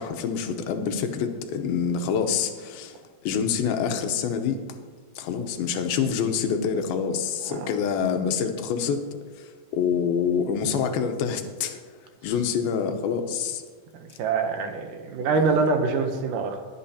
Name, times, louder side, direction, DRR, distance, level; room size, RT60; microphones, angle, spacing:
voice 1, 0.0-4.6 5.2-9.0 9.4-11.8 12.2-13.6 15.4-15.5, left 7 dB, 90° left, 6 dB, 2.7 m, -26 dB
voice 2, 13.9-16.6, right 4 dB, 75° right, 5 dB, 2.2 m, -25 dB
21.5 x 8.7 x 2.8 m, 1.5 s
omnidirectional pair, 4.1 m